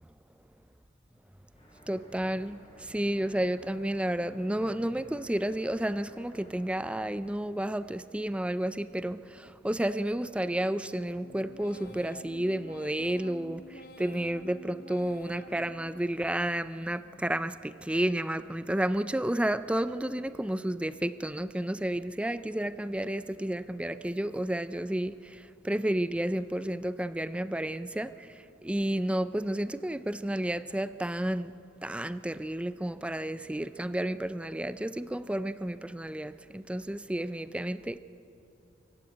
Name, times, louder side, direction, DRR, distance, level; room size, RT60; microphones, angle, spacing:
sound 1, 1.5-7.0, equal, 30° left, 5.4 m, -56 dB
voice 1, 1.9-31.5 31.8-38.0, right 1 dB, 5° right, 14 dB, 0.4 m, -31 dB
sound 2, 10.8-16.6 17.0-17.7 18.1-18.8 19.2-19.9 20.3-20.9 21.4-22.0, left 1 dB, 55° left, 1.2 m, -51 dB
24.0 x 15.0 x 9.4 m, 2.7 s
head